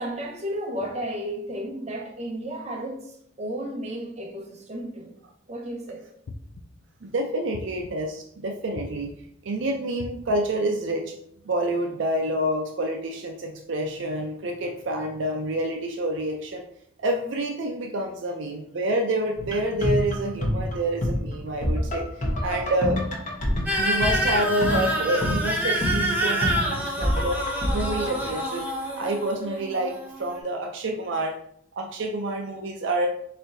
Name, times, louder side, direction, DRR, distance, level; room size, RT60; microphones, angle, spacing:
voice 1, 0.0-5.2 5.5-6.0, right 1 dB, 35° right, 0 dB, 0.8 m, -33 dB
sound 1, 6.3-6.9 7.5-8.2 8.8-9.4 10.0-10.6, left 2 dB, 55° left, 0.4 m, -41 dB
voice 2, 7.0-9.1 9.4-11.1 11.4-16.6 17.0-22.1 22.4-23.0 23.8-27.4 27.7-28.7 29.0-31.3 31.7-33.1, right 1 dB, 65° right, 2 dB, 0.5 m, -28 dB
sound 2, 19.4-29.3 29.6-29.7, left 1 dB, 40° left, 1.0 m, -28 dB
sound 3, 23.7-30.4, equal, 10° right, 0.7 m, -27 dB
4.5 x 4.2 x 2.6 m, 0.69 s
head